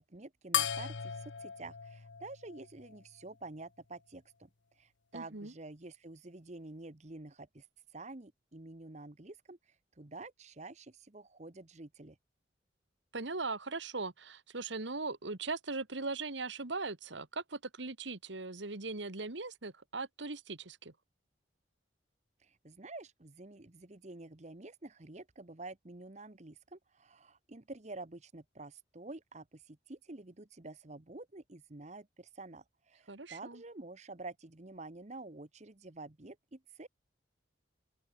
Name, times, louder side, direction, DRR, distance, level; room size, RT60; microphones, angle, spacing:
voice 1, 0.0-4.5 4.7-7.7 7.9-12.2 22.4-36.9, right 2 dB, 35° right, 1.1 m, -49 dB
sound 1, 0.5-3.3, left 9 dB, 75° left, 0.9 m, -37 dB
voice 2, 5.1-5.5 13.1-20.9 33.1-33.6, right 3 dB, 75° right, 1.8 m, -39 dB
open air
head